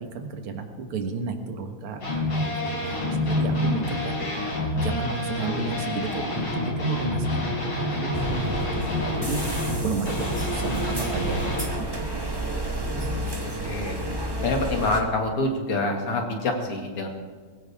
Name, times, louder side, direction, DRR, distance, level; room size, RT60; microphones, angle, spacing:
voice 1, 0.1-4.4 4.8-6.4 6.8-8.6 8.9-9.4 9.8-12.4, right 4 dB, 80° right, 5 dB, 2.3 m, -32 dB
sound 1, 2.0-11.7, left 2 dB, 55° left, 4.6 m, -28 dB
sound 2, 8.1-15.0, right 1 dB, 15° right, 1.2 m, -31 dB
voice 2, 12.9-14.0 14.4-17.1, left 2 dB, 85° left, 2 dB, 3.2 m, -27 dB
22.0 x 16.0 x 3.6 m, 1.5 s
omnidirectional pair, 2.4 m